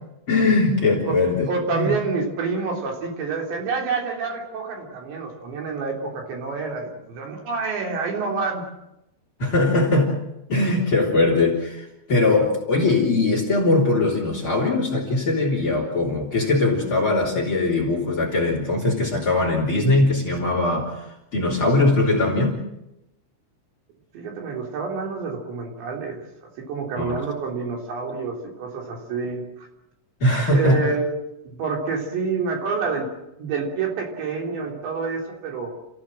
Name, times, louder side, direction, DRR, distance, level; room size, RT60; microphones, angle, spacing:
voice 1, 0.3-1.9 9.4-10.1 10.5-21.1 21.3-22.6 27.0-27.2 30.2-30.8, left 2 dB, 30° left, 1 dB, 3.5 m, -21 dB
voice 2, 1.4-8.6 24.1-29.7 30.5-31.2 31.5-33.1 33.4-35.7, right 4 dB, 65° right, 1 dB, 5.5 m, -28 dB
29.5 x 16.0 x 7.7 m, 0.87 s
omnidirectional pair, 5.7 m